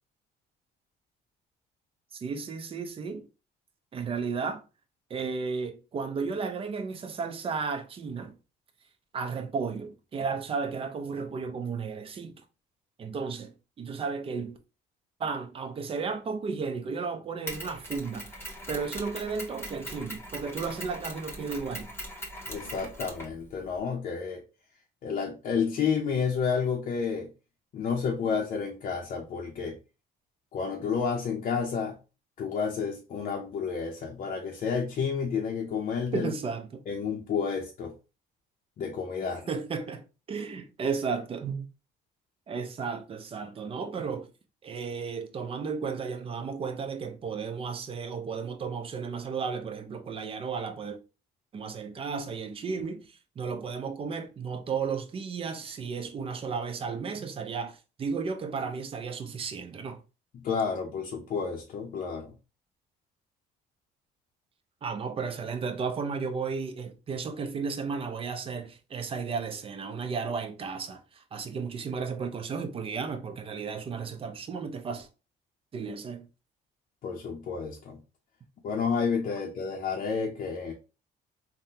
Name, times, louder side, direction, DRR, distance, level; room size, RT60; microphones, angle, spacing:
voice 1, 2.1-3.3 3.9-4.6 5.1-8.4 9.1-12.3 13.0-14.6 15.2-18.3 18.7-21.9 36.1-36.8 39.5-41.7 42.5-44.3 44.6-51.0 51.5-60.0 64.8-75.1 75.7-76.3, right 5 dB, 35° right, 0.5 m, -34 dB
Mechanisms, 17.5-23.8, equal, 15° left, 1.0 m, -41 dB
voice 2, 22.5-24.4 25.0-27.3 27.7-29.8 30.5-32.0 32.4-36.3 36.9-37.9 38.8-39.4 60.3-62.3 77.0-78.0 78.6-80.7, left 6 dB, 50° left, 0.6 m, -30 dB
3.6 x 2.2 x 2.7 m
cardioid pair, 110°, 17 cm